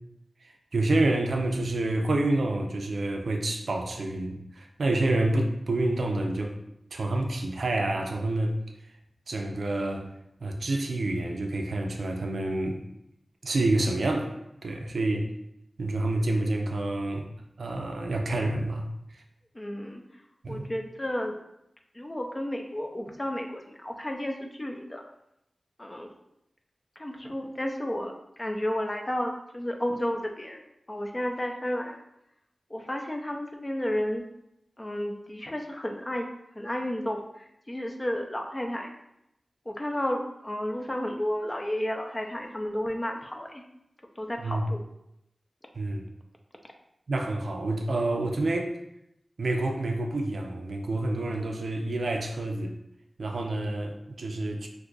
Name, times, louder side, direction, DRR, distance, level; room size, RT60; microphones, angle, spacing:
voice 1, 0.4-6.6 6.9-8.6 9.3-10.1 10.4-12.8 13.4-14.4 14.6-15.3 15.8-17.3 17.6-19.2 20.4-20.7 44.4-44.7 45.7-46.0 47.1-48.8 49.4-52.8 53.2-54.7, right 2 dB, 80° right, 2 dB, 0.4 m, -28 dB
voice 2, 19.5-20.0 20.5-21.4 21.9-25.0 25.8-26.1 27.0-30.6 30.9-32.0 32.7-34.2 34.8-36.3 36.5-38.9 39.7-43.6 44.2-44.8, left 1 dB, 25° left, 3 dB, 0.5 m, -32 dB
2.6 x 2.4 x 3.8 m, 0.81 s
wide cardioid pair, 60°, 0 cm